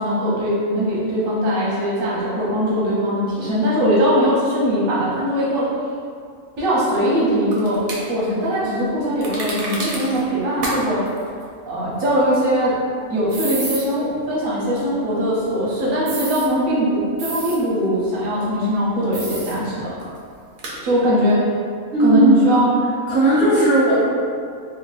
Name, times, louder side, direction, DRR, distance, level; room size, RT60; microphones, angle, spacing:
voice 1, 0.0-5.7 6.6-7.8 8.1-11.0 11.6-12.8 13.1-19.9 20.8-21.5 22.0-22.7, equal, 90° right, -7 dB, 1.2 m, -20 dB
sound 1, 7.5-8.0 9.2-10.2 10.6-10.8 11.1-11.2 13.3-13.8 16.1-16.5 17.2-17.6 19.1-19.5 20.0-20.1 20.6-20.7, right 2 dB, 60° right, 0.6 m, -29 dB
voice 2, 21.9-22.8 23.1-24.0, right 1 dB, 15° right, -12 dB, 0.5 m, -16 dB
3.2 x 2.1 x 2.4 m, 2.2 s
omnidirectional pair, 1.4 m